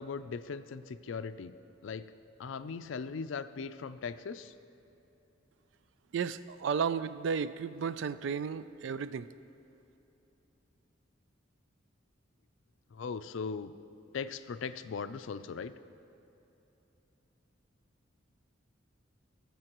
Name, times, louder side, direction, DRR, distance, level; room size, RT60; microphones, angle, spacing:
voice 1, 0.0-1.6 1.8-2.1 2.4-4.5 12.9-13.7 14.1-15.7, left 5 dB, 70° left, 12 dB, 0.4 m, -39 dB
voice 2, 6.1-9.3, right 6 dB, 65° right, 14 dB, 0.3 m, -33 dB
20.5 x 6.8 x 3.0 m, 3.0 s
head